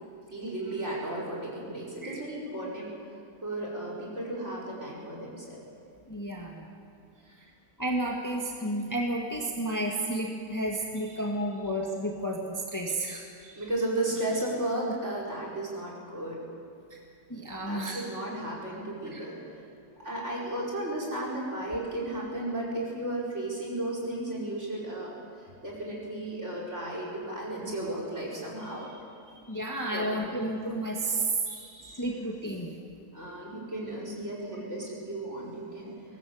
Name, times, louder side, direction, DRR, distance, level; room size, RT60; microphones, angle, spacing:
voice 1, 0.3-2.9 3.4-5.6 7.3-7.4 13.4-16.4 17.6-19.6 20.0-29.3 29.9-30.4 31.5-32.0 33.1-36.2, right 1 dB, 40° right, -3 dB, 5.4 m, -34 dB
voice 2, 6.1-6.6 7.8-13.2 16.9-17.0 17.3-18.0 19.1-19.3 29.5-31.3 31.9-32.7, right 1 dB, 10° left, 0 dB, 1.8 m, -31 dB
22.0 x 19.0 x 7.9 m, 2.4 s
omnidirectional pair, 1.8 m